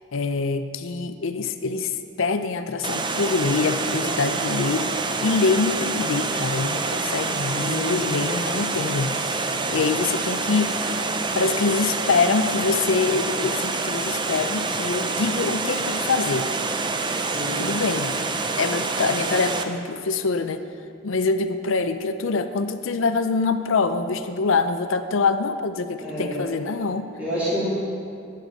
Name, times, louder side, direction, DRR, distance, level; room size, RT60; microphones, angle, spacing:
voice 1, 0.1-4.9 5.2-10.8 11.3-16.5 17.6-18.1 18.6-20.6 21.0-27.1, left 4 dB, 70° left, 10 dB, 0.5 m, -25 dB
Water, 2.8-19.6, right 3 dB, 25° right, 0.5 m, -27 dB
voice 2, 7.5-7.9 17.3-17.6 26.0-26.4 27.2-27.7, equal, 5° right, -12 dB, 2.6 m, -28 dB
9.5 x 9.2 x 5.3 m, 2.4 s
head